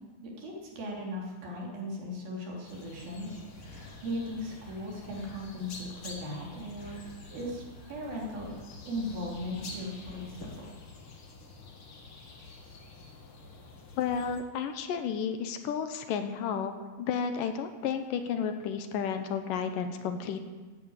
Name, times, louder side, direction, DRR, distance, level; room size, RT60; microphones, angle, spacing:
voice 1, 0.2-7.0 7.3-8.5 8.9-10.6, left 1 dB, 80° right, -2 dB, 5.2 m, -38 dB
sound 1, 2.6-14.4, left 3 dB, 45° left, 2.3 m, -48 dB
sound 2, 3.1-10.7, left 3 dB, 90° left, 6.2 m, -52 dB
voice 2, 14.0-16.7 17.0-20.4, left 7 dB, 70° left, 7 dB, 2.4 m, -32 dB
15.0 x 10.0 x 8.9 m, 1.3 s
omnidirectional pair, 4.2 m